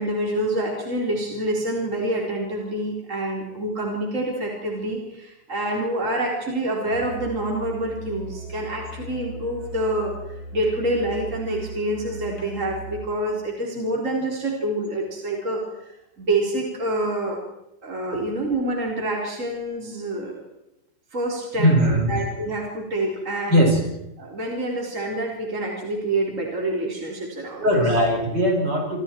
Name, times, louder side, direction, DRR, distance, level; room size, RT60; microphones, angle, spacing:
voice 1, 0.0-17.4 17.8-20.4 21.1-21.7 22.1-23.6 24.2-27.6, right 1 dB, 45° right, -1 dB, 4.4 m, -27 dB
Musical instrument, 6.8-13.2, right 3 dB, 60° left, 6.2 m, -38 dB
voice 2, 21.6-22.1 23.5-23.8 27.6-29.0, equal, 70° right, 0 dB, 6.8 m, -19 dB
27.5 x 27.0 x 4.6 m, 0.89 s
omnidirectional pair, 1.9 m